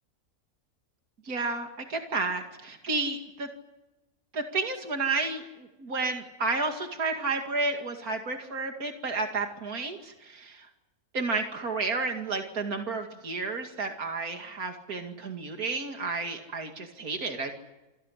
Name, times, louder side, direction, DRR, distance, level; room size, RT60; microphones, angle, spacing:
voice 1, 1.2-3.5 4.3-10.7 11.1-17.5, right 3 dB, 85° right, 4 dB, 2.8 m, -31 dB
27.0 x 17.5 x 10.0 m, 1.0 s
omnidirectional pair, 1.5 m